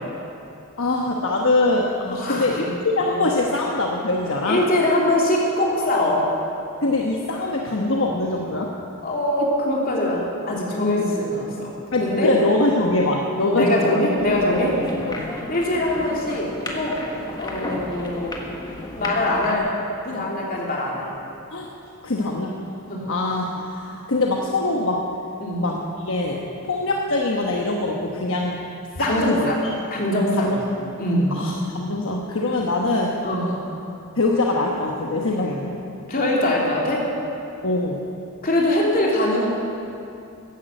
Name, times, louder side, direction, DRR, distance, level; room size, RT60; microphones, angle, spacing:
voice 1, 0.8-4.6 6.8-8.7 11.9-14.7 15.1-15.3 21.5-21.7 22.0-22.6 23.1-25.1 25.6-28.6 28.9-29.5 30.3-30.6 31.3-33.2 34.1-35.8 37.6-38.0, left 2 dB, 65° left, -1 dB, 1.2 m, -23 dB
voice 2, 2.1-2.5 3.1-3.2 4.4-6.2 9.0-11.7 12.0-12.3 13.5-14.7 15.5-17.0 17.4-18.4 19.0-19.7 20.0-21.1 22.9-23.1 25.4-25.6 29.0-29.5 29.9-30.6 31.0-31.3 33.2-33.6 36.1-37.0 38.4-39.5, left 1 dB, 40° left, -3 dB, 3.1 m, -22 dB
sound 1, 14.2-19.6, left 1 dB, 20° left, 1.5 m, -33 dB
14.5 x 11.0 x 7.8 m, 2.7 s
head